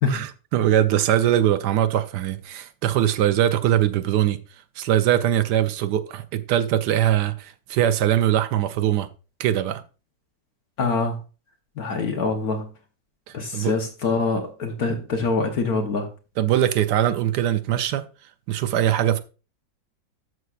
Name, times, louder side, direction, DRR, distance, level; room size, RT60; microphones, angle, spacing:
voice 1, 0.1-4.4 4.8-9.1 9.4-9.8 13.5-13.7 16.4-18.0 18.5-19.2, right 11 dB, 70° right, 1.2 m, -21 dB
voice 2, 10.8-11.2 11.8-12.7 13.3-16.1, left 4 dB, 60° left, 1.4 m, -24 dB
12.5 x 6.2 x 2.4 m
omnidirectional pair, 2.0 m